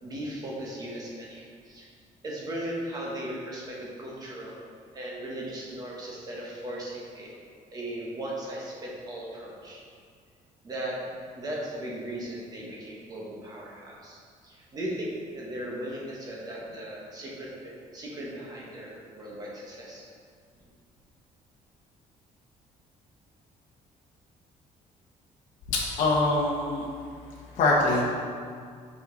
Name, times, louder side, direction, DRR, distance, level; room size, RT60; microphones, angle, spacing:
voice 1, 0.0-1.9 2.2-4.6 4.9-7.3 7.7-9.8 10.6-11.0 11.3-14.2 14.4-20.1, right 1 dB, 25° right, -4 dB, 1.1 m, -37 dB
voice 2, 25.7-26.9 27.6-28.0, left 2 dB, 60° left, -5 dB, 1.0 m, -24 dB
5.7 x 5.3 x 3.9 m, 2.1 s
cardioid pair, 180°, 15 cm